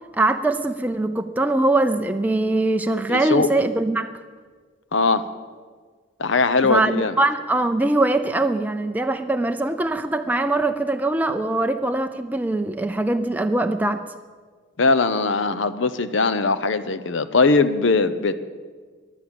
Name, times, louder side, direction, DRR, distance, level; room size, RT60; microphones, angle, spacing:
voice 1, 0.1-4.1 6.6-14.0, right 2 dB, 10° right, 6 dB, 0.4 m, -22 dB
voice 2, 3.1-3.5 4.9-5.2 6.2-7.1 14.8-18.3, left 3 dB, 70° left, 13 dB, 0.7 m, -20 dB
14.5 x 11.0 x 7.0 m, 1.5 s
head